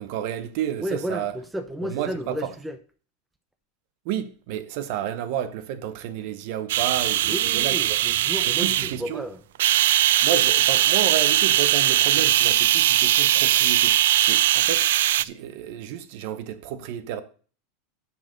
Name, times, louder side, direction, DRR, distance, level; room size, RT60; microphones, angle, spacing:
voice 1, 0.0-1.4 1.8-2.5 4.0-8.0 8.6-9.2 10.2-14.9 15.2-17.2, right 10 dB, 50° right, 0.8 m, -31 dB
voice 2, 0.8-2.8 7.2-9.4, equal, 5° right, 0.5 m, -32 dB
sound 1, 6.7-9.0 9.6-15.2, right 13 dB, 85° right, 0.3 m, -20 dB
7.4 x 5.9 x 6.6 m
supercardioid pair, 170°, 0 cm